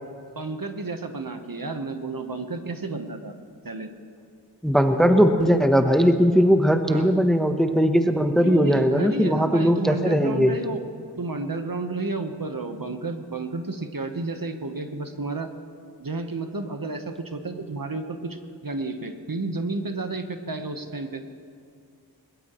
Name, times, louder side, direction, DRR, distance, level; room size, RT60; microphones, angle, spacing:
voice 1, 0.3-3.3 3.6-3.9 6.9-7.1 8.4-10.8 11.2-15.5 16.0-21.3, right 3 dB, 55° right, 6 dB, 1.1 m, -31 dB
voice 2, 4.6-10.5, equal, ahead, 6 dB, 0.9 m, -19 dB
21.0 x 20.5 x 3.1 m, 2.3 s
wide cardioid pair, 50°, 41 cm